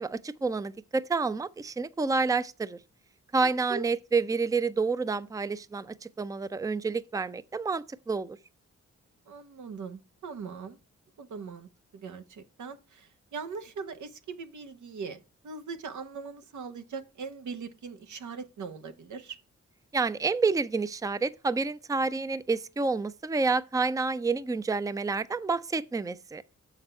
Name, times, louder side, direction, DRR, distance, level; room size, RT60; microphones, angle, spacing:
voice 1, 0.0-2.8 3.3-8.4 19.9-26.4, right 4 dB, 10° right, 0.5 m, -29 dB
voice 2, 3.4-3.9 9.3-10.8 11.2-19.4, right 5 dB, 85° right, 1.0 m, -41 dB
6.8 x 5.9 x 4.4 m
cardioid pair, 75°, 29 cm